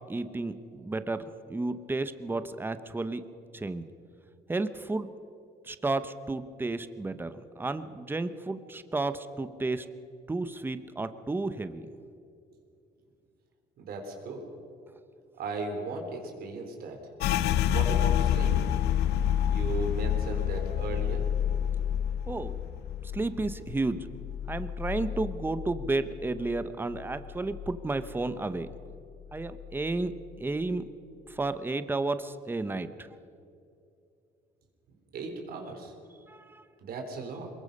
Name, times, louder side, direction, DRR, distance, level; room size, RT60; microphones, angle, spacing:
voice 1, 0.1-3.2 3.5-3.8 4.5-5.1 5.7-9.9 10.3-11.9 22.3-22.6 23.0-24.1 24.5-28.7 29.3-30.1 30.4-30.9 31.3-33.1 36.3-36.6, right 2 dB, 10° right, 12 dB, 0.9 m, -32 dB
voice 2, 13.8-14.4 15.4-17.0 17.7-18.5 19.5-21.2 35.1-35.9 36.8-37.5, right 3 dB, 65° right, 3 dB, 4.0 m, -36 dB
sound 1, 17.2-26.6 26.9-28.1 28.5-28.9 29.4-30.0, left 10 dB, 80° left, 0.8 m, -29 dB
22.5 x 21.0 x 5.5 m, 2.6 s
cardioid pair, 110°, 17 cm